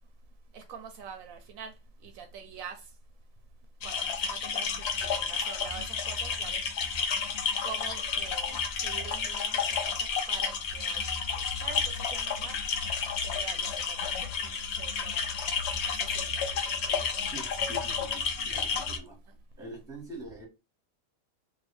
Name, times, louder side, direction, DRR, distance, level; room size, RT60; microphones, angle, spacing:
voice 1, 0.5-1.7 2.0-2.8 3.8-4.7 5.0-6.6 7.6-8.6 8.8-9.6 10.3-11.0 11.6-11.8 12.1-12.6 13.2-15.1 16.0-16.3 16.7-16.8 17.1-17.3, right 6 dB, 75° right, 1.0 m, -44 dB
sound 1, 3.8-19.0, left 6 dB, 60° left, 0.7 m, -31 dB
voice 2, 17.3-19.2 19.6-20.5, right 2 dB, 5° right, 1.2 m, -44 dB
2.7 x 2.6 x 3.2 m
omnidirectional pair, 1.5 m